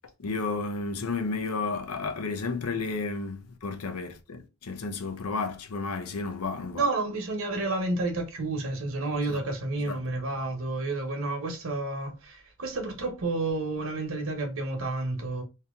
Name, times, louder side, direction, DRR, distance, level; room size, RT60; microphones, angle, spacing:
voice 1, 0.2-6.8 9.3-9.4 9.9-10.0, left 4 dB, 85° left, 0.7 m, -32 dB
voice 2, 6.7-15.4, right 2 dB, 60° right, 1.0 m, -30 dB
2.8 x 2.8 x 3.6 m
head